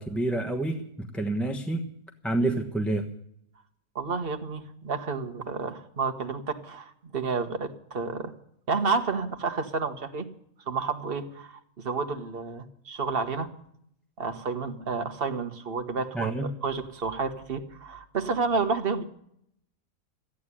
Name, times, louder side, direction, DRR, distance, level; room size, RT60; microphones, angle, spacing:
voice 1, 0.0-1.8 2.2-3.1 16.1-16.5, right 2 dB, ahead, 5 dB, 0.9 m, -28 dB
voice 2, 3.9-8.3 8.7-10.3 10.7-13.5 14.2-19.0, right 4 dB, 40° right, 7 dB, 1.4 m, -30 dB
14.0 x 9.4 x 9.8 m, 0.72 s
omnidirectional pair, 1.7 m